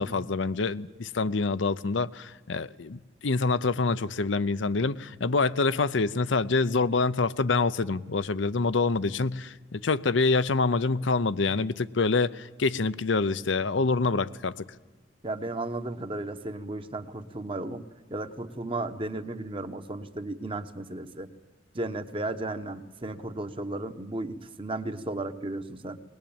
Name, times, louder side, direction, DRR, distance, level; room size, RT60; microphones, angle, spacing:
voice 1, 0.0-14.6, left 3 dB, 75° left, 0.7 m, -26 dB
voice 2, 15.2-21.3 21.7-26.0, right 2 dB, 30° right, 1.1 m, -34 dB
21.5 x 20.0 x 8.8 m
head